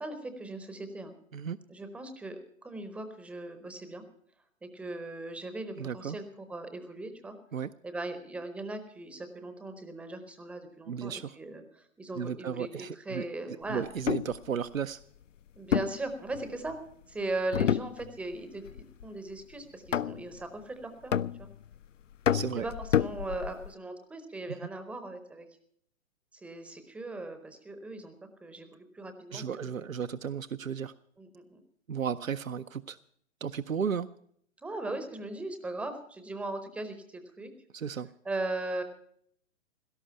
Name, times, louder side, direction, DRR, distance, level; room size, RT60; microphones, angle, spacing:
voice 1, 0.0-1.1 1.7-4.0 4.6-7.3 7.8-12.7 12.9-13.8 15.5-16.8 17.1-21.5 22.6-25.5 26.3-29.4 31.2-31.6 34.6-37.5 38.2-38.8, right 2 dB, 5° right, 8 dB, 0.6 m, -38 dB
voice 2, 5.8-6.2 7.5-7.7 10.9-11.4 12.2-13.2 13.7-15.0 22.3-22.7 24.5-24.6 29.3-30.9 31.9-33.0 33.4-34.1 37.7-38.1, right 7 dB, 80° right, 9 dB, 0.6 m, -34 dB
sound 1, 13.9-14.4 15.7-16.8 17.5-18.4 18.7-19.1 19.9-20.4 21.1-21.8 22.3-23.7, left 9 dB, 70° left, 0.5 m, -29 dB
17.0 x 13.0 x 5.6 m, 0.66 s
figure-of-eight pair, 120°, 39 cm